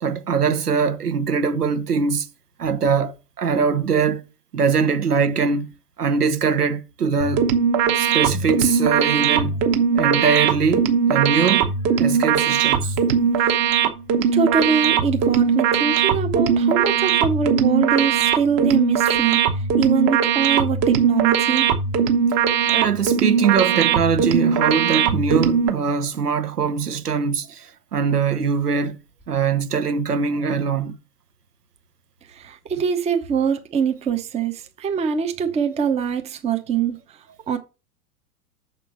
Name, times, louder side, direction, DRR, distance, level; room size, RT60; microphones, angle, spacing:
voice 1, 0.0-2.3 2.6-4.2 4.5-5.7 6.0-7.4 8.0-9.5 9.9-11.7 12.0-13.0 22.7-27.7 27.9-29.0 29.3-30.9, right 5 dB, 75° right, 1.1 m, -22 dB
sound 1, 7.2-25.7, right 7 dB, 30° right, 1.2 m, -20 dB
voice 2, 14.3-19.4 19.8-21.7 32.3-37.0 37.5-37.6, right 6 dB, 15° right, 0.8 m, -23 dB
7.1 x 4.5 x 6.1 m
figure-of-eight pair, 95°, 47 cm